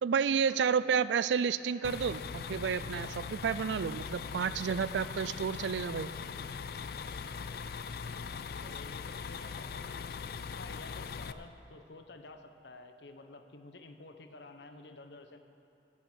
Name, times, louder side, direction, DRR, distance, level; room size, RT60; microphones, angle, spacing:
voice 1, 0.0-6.1, right 6 dB, 85° right, 15 dB, 0.4 m, -31 dB
sound 1, 1.8-11.3, left 5 dB, 60° left, 0.4 m, -41 dB
voice 2, 8.0-15.4, left 3 dB, 75° left, 7 dB, 0.9 m, -52 dB
12.0 x 8.4 x 7.2 m, 2.9 s
head